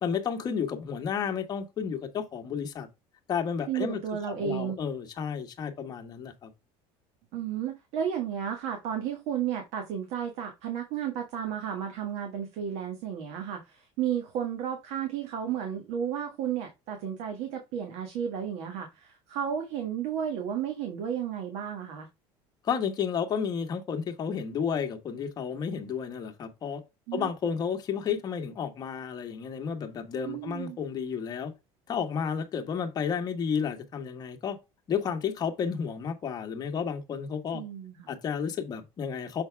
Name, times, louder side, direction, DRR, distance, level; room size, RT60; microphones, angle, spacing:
voice 1, 0.0-2.9 3.3-4.0 4.3-6.5 22.6-26.8 27.1-31.5 31.9-34.6 34.9-37.6 38.1-39.4, left 7 dB, 35° left, 1.4 m, -32 dB
voice 2, 3.7-4.8 7.3-22.1 27.1-27.3 30.2-30.8 37.5-38.1, right 8 dB, 70° right, 1.5 m, -33 dB
6.9 x 4.0 x 3.4 m
cardioid pair, 130°, 11 cm